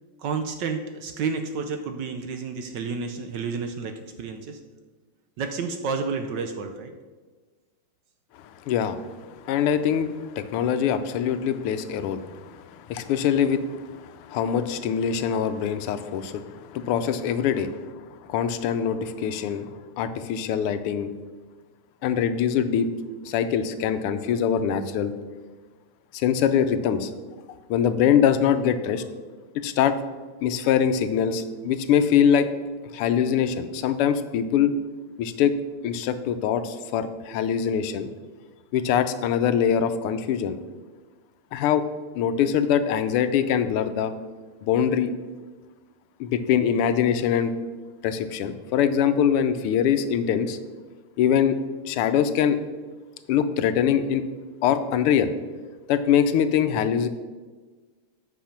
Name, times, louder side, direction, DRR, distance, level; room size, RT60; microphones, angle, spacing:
voice 1, 0.2-3.9 4.2-4.6 5.4-6.9, right 5 dB, 70° right, 6 dB, 1.2 m, -30 dB
voice 2, 8.7-9.2 9.4-17.8 18.3-21.1 22.0-22.9 23.2-25.1 26.1-27.1 27.7-29.0 29.5-29.9 30.4-32.5 32.9-34.7 35.2-35.5 35.8-38.1 38.7-40.6 41.5-41.8 42.1-44.1 44.6-45.1 46.2-47.5 48.0-50.6 51.2-51.6 51.8-52.6 53.3-54.2 54.6-55.3 55.9-57.1, left 8 dB, 90° left, 11 dB, 1.6 m, -23 dB
8.4 x 5.8 x 5.8 m, 1.4 s
omnidirectional pair, 2.4 m